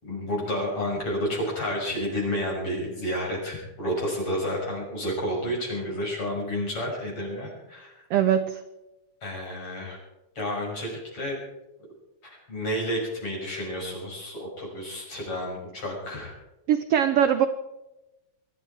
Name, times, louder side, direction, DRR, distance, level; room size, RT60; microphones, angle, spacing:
voice 1, 0.0-7.9 9.2-10.0 10.4-11.4 12.2-16.3, equal, 40° left, -1 dB, 7.1 m, -30 dB
voice 2, 8.1-8.6 16.7-17.5, right 9 dB, 80° right, 10 dB, 1.3 m, -21 dB
23.0 x 13.0 x 4.7 m, 0.97 s
omnidirectional pair, 3.7 m